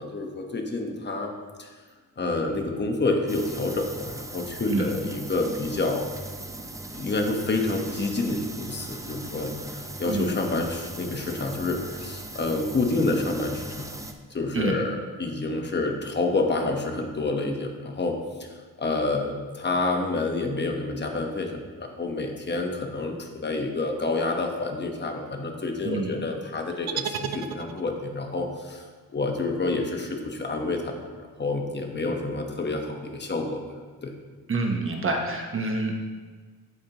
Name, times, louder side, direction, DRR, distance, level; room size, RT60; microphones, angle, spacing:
voice 1, 0.0-1.3 1.6-1.7 2.2-6.1 6.9-14.0 14.3-28.8 29.1-30.9 31.4-33.6 34.0-34.1, left 2 dB, 30° left, 2 dB, 1.1 m, -28 dB
sound 1, 3.3-14.1, right 2 dB, 10° right, 0.5 m, -39 dB
sound 2, 26.9-28.2, right 8 dB, 80° right, 0.6 m, -33 dB
voice 2, 34.5-35.9, right 3 dB, 35° right, 2 dB, 1.0 m, -27 dB
15.0 x 5.2 x 2.9 m, 1.5 s
cardioid pair, 120°, 36 cm